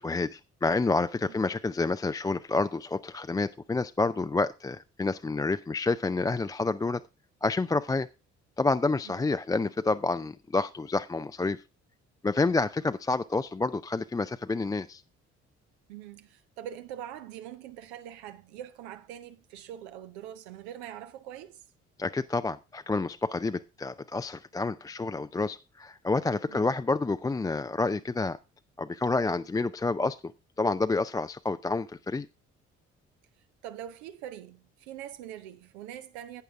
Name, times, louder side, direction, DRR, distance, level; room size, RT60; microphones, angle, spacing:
voice 1, 0.0-7.0 7.4-8.1 8.6-11.6 12.2-15.0 22.0-28.4 28.8-30.3 30.6-32.3, left 3 dB, 10° left, 0.4 m, -29 dB
voice 2, 15.9-21.6 26.5-26.7 33.6-36.4, right 11 dB, 65° right, 0.8 m, -43 dB
11.5 x 9.1 x 3.5 m
figure-of-eight pair, 45°, 36 cm